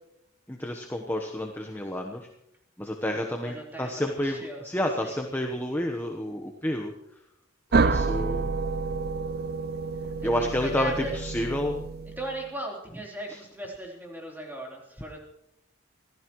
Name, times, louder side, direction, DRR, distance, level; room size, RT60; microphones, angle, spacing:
voice 1, 0.5-2.3 2.8-6.9 7.7-8.4 10.2-11.8 13.3-13.4, left 1 dB, 10° left, 2 dB, 1.1 m, -30 dB
voice 2, 3.4-4.6 5.0-5.2 10.0-11.2 12.1-15.2, right 1 dB, 10° right, -2 dB, 3.7 m, -38 dB
sound 1, 7.7-12.4, right 4 dB, 50° right, 0.6 m, -28 dB
25.0 x 16.0 x 3.1 m, 0.82 s
head